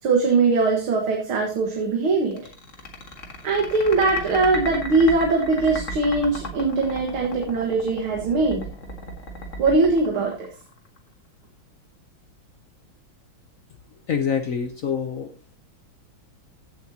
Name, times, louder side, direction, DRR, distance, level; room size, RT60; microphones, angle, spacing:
voice 1, 0.0-2.5 3.4-8.7 9.6-10.5, right 3 dB, 90° right, 1 dB, 2.5 m, -21 dB
sound 1, 2.3-11.0, equal, 40° left, 1.9 m, -34 dB
voice 2, 14.1-15.4, left 7 dB, 60° left, 8 dB, 0.9 m, -26 dB
15.5 x 7.6 x 2.8 m, 0.36 s
omnidirectional pair, 2.2 m